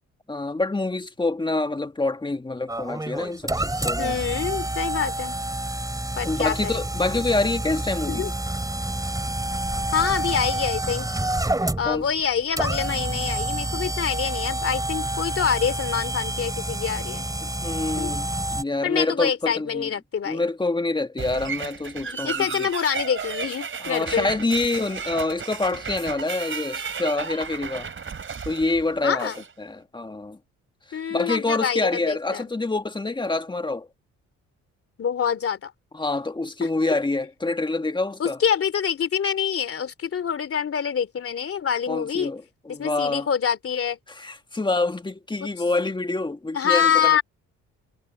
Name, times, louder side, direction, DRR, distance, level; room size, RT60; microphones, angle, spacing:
voice 1, 0.3-4.2 6.2-8.3 11.8-12.1 17.4-19.9 20.3-22.7 23.8-27.9 28.5-29.3 29.6-30.4 30.9-33.9 35.9-38.4 41.9-43.3 44.2-47.2, left 2 dB, 15° left, 1.7 m, -26 dB
sound 1, 2.7-18.6, right 1 dB, 10° right, 7.6 m, -28 dB
voice 2, 4.0-5.4 6.2-6.7 8.1-8.3 9.9-11.1 11.8-17.3 18.0-18.1 18.8-20.4 22.0-24.3 29.0-29.4 30.9-32.5 35.0-35.7 38.2-42.3 42.7-44.0 46.5-47.2, left 7 dB, 45° left, 2.8 m, -26 dB
sound 2, 21.2-29.5, right 6 dB, 40° right, 5.1 m, -34 dB
cardioid pair, 90°, 30 cm